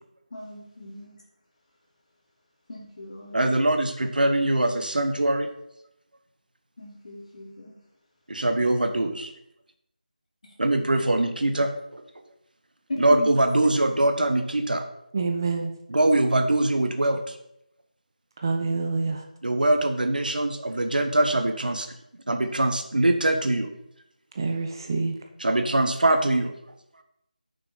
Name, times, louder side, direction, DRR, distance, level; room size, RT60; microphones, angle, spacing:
voice 1, 0.3-1.2 2.7-3.4 6.8-7.8 10.4-10.9 12.9-13.4, left 2 dB, 50° left, -2 dB, 2.7 m, -37 dB
voice 2, 3.3-5.5 8.3-9.3 10.6-12.0 13.0-14.8 15.9-17.4 19.4-21.9 22.3-23.7 25.4-26.5, right 1 dB, 70° right, 6 dB, 1.1 m, -23 dB
voice 3, 15.1-15.7 18.4-19.2 24.3-25.1, right 4 dB, 25° right, 2 dB, 0.6 m, -27 dB
6.6 x 6.0 x 3.9 m, 0.78 s
figure-of-eight pair, 165°, 5 cm